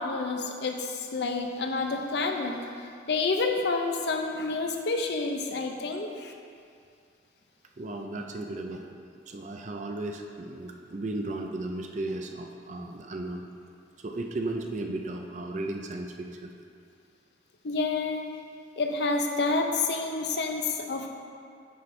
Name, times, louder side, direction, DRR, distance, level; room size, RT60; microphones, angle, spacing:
voice 1, 0.0-2.6 3.1-6.3 17.6-18.2 18.8-21.1, left 3 dB, 65° left, 3 dB, 0.6 m, -29 dB
voice 2, 7.8-8.9 9.3-13.4 14.0-16.5, right 2 dB, 40° right, 3 dB, 0.4 m, -35 dB
9.1 x 4.4 x 3.2 m, 2.3 s
head